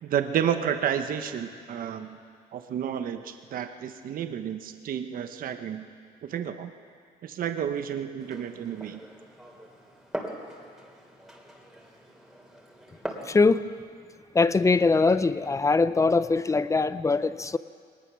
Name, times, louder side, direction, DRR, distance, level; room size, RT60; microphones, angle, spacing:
voice 1, 0.0-2.2 2.5-5.9 6.3-6.7 7.2-9.0, right 9 dB, 55° right, 8 dB, 1.1 m, -31 dB
Glass, 8.2-13.3, right 1 dB, ahead, 3.1 m, -41 dB
voice 2, 13.3-13.6 14.3-17.6, left 3 dB, 20° left, 14 dB, 0.6 m, -22 dB
21.5 x 19.5 x 6.3 m, 2.1 s
cardioid pair, 110°, 17 cm